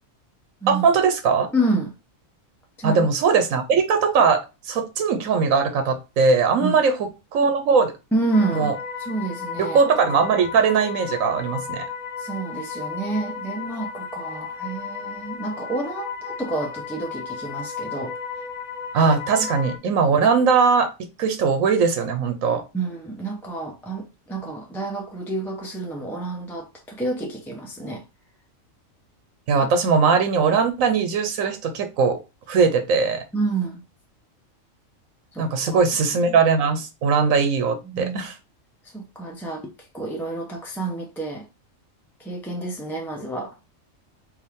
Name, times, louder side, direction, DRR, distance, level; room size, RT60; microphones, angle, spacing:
voice 1, 0.7-1.5 2.8-7.9 8.5-8.7 9.6-11.8 18.9-20.9 21.2-22.6 29.5-32.2 32.5-33.2 35.4-38.3, right 5 dB, 85° right, 1.2 m, -20 dB
voice 2, 1.5-1.9 2.8-3.0 6.6-6.8 8.1-8.7 9.0-9.8 12.2-18.1 19.4-19.5 22.7-28.0 33.3-33.8 35.3-35.8 36.3-36.4 37.9-38.2 38.9-39.7 39.9-41.4 42.2-43.5, right 2 dB, 5° left, 0.4 m, -29 dB
sound 1, 8.3-19.8, left 6 dB, 80° left, 0.3 m, -34 dB
4.7 x 2.6 x 3.5 m
omnidirectional pair, 1.4 m